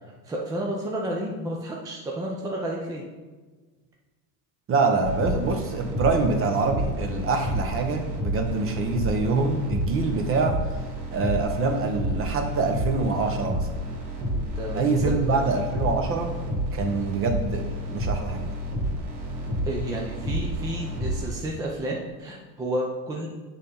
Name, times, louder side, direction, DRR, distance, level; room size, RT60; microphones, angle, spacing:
voice 1, 0.0-3.0 14.3-15.2 19.4-23.3, right 1 dB, 10° right, -2 dB, 0.3 m, -31 dB
voice 2, 4.7-10.6 11.1-13.7 14.7-16.3 16.7-17.6 17.9-18.5, right 3 dB, 25° right, 4 dB, 1.0 m, -25 dB
sound 1, 5.0-21.3, equal, 50° right, 2.1 m, -30 dB
6.6 x 3.7 x 5.4 m, 1.3 s
supercardioid pair, 135°, 47 cm